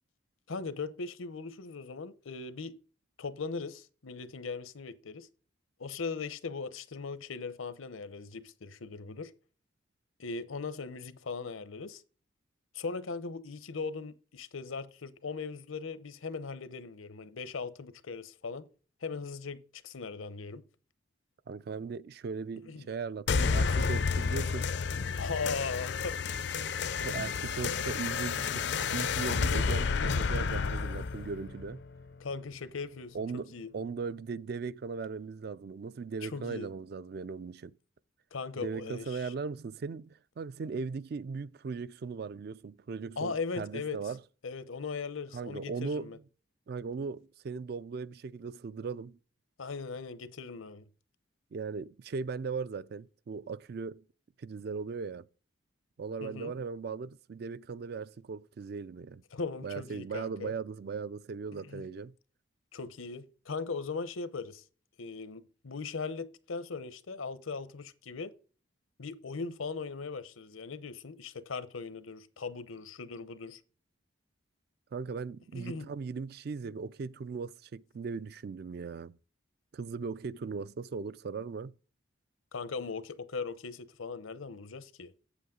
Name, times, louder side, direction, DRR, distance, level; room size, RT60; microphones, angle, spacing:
voice 1, 0.5-2.7 3.2-5.3 5.8-9.3 10.2-12.0 12.7-18.7 19.0-20.6 22.6-22.9 25.2-26.2 32.2-33.7 36.2-36.7 38.3-39.3 43.2-44.0 44.4-46.2 49.6-50.8 56.2-56.5 59.3-60.5 61.5-61.9 62.7-64.6 65.0-68.3 69.0-73.6 75.5-75.9 82.5-85.4, left 4 dB, 85° left, 0.8 m, -39 dB
voice 2, 21.5-24.7 27.0-31.8 33.1-37.7 38.6-44.2 45.3-46.1 46.7-49.2 51.5-54.0 54.4-55.3 56.0-59.2 59.6-62.1 74.9-79.1 79.7-81.8, right 5 dB, 50° right, 0.3 m, -38 dB
sound 1, 23.3-32.3, left 5 dB, 55° left, 0.4 m, -31 dB
8.2 x 7.9 x 3.7 m
head